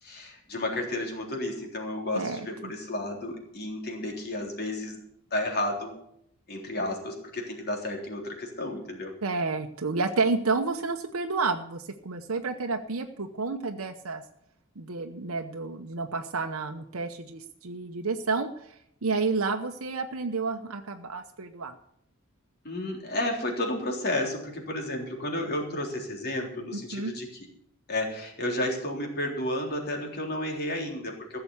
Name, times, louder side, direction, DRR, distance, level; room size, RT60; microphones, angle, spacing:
voice 1, 0.0-5.0 5.3-5.9 6.5-9.1 22.6-27.5 27.9-31.4, left 1 dB, 50° left, 1 dB, 3.6 m, -32 dB
voice 2, 2.1-2.7 9.2-14.2 14.8-18.7 19.0-21.7 26.7-27.1, right 4 dB, 85° right, 4 dB, 0.9 m, -30 dB
15.5 x 6.9 x 8.3 m, 0.73 s
head